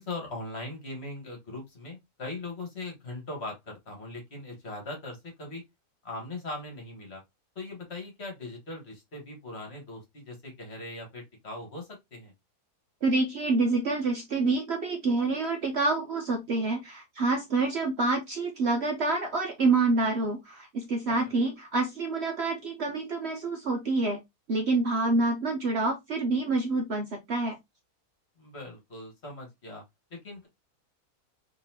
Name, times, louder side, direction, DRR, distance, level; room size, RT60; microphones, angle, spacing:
voice 1, 0.0-5.6 6.0-7.2 7.6-12.3 28.4-29.8 30.1-30.5, left 2 dB, 45° left, 1.7 m, -40 dB
voice 2, 13.0-24.2 24.5-27.6, right 3 dB, 55° right, 0.8 m, -27 dB
4.1 x 3.2 x 2.7 m
omnidirectional pair, 1.6 m